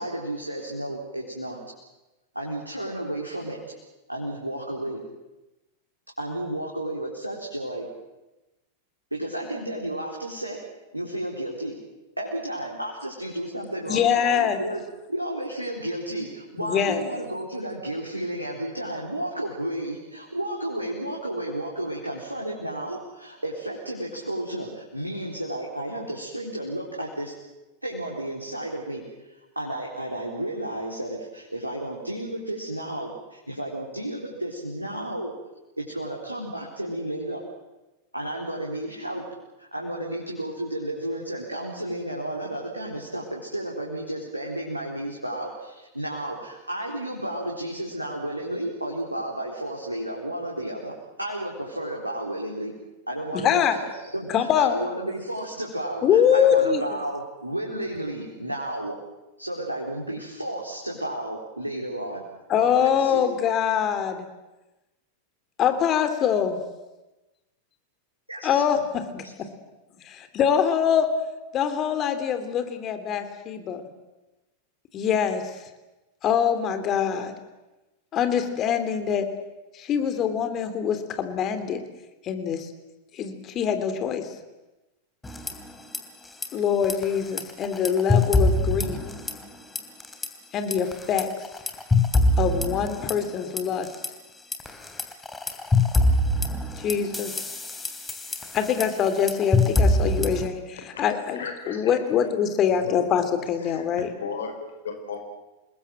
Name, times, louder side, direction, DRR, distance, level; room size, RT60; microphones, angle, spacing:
voice 1, 0.0-1.6 2.3-3.6 4.1-5.0 6.2-7.8 9.1-10.6 10.9-11.8 12.2-14.8 15.1-27.3 27.8-35.3 35.8-37.4 38.1-39.2 39.6-50.9 51.2-52.7 53.1-59.0 59.4-62.2 62.5-63.3 68.3-68.8 69.2-69.3, right 1 dB, 85° right, -2 dB, 4.1 m, -32 dB
voice 2, 13.9-14.6 16.6-17.0 53.3-53.8 54.3-54.8 56.0-56.8 62.5-64.3 65.6-66.6 68.4-69.2 70.0-71.1 71.5-73.8 74.9-75.5 76.2-77.3 78.1-79.3 79.7-81.8 82.2-82.7 83.1-84.3 86.5-89.0 90.5-91.3 92.4-93.9 96.8-97.3 98.5-104.1, left 8 dB, 30° left, 9 dB, 3.3 m, -24 dB
sound 1, 85.2-86.0 86.3-86.5 86.8-89.5 89.8-90.3 90.7-94.1 94.5-100.5, left 2 dB, 10° left, 3.3 m, -24 dB
voice 3, 101.4-101.9 102.7-102.9 103.6-105.2, left 5 dB, 65° left, 6 dB, 4.7 m, -36 dB
28.0 x 21.0 x 7.7 m, 1.0 s
figure-of-eight pair, 90°, 0 cm